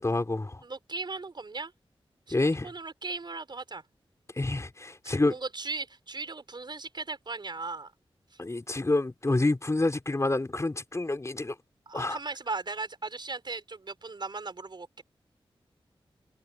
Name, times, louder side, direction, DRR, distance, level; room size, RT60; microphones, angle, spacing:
voice 1, 0.0-0.6 2.3-2.7 4.4-5.3 8.4-11.5 11.9-12.2, left 2 dB, 30° left, 5.0 m, -28 dB
voice 2, 0.6-1.7 2.3-3.8 5.0-7.9 11.9-15.0, right 3 dB, 50° right, 5.7 m, -37 dB
wide cardioid pair, 75°, 10 cm